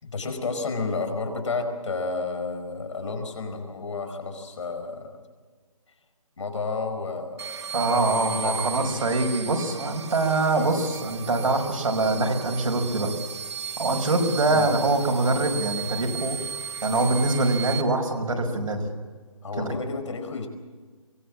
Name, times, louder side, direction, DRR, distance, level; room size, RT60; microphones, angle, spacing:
voice 1, 0.0-5.2 6.4-7.5 7.8-9.0 14.4-14.7 19.4-20.5, left 3 dB, 55° left, 5 dB, 4.7 m, -31 dB
sound 1, 7.4-17.8, right 7 dB, 50° right, 1.4 m, -35 dB
voice 2, 7.7-13.1 13.8-16.4 16.8-18.8 19.6-19.7, right 2 dB, 70° right, 3 dB, 5.5 m, -24 dB
23.5 x 19.5 x 7.5 m, 1.5 s
hypercardioid pair, 165°, 18 cm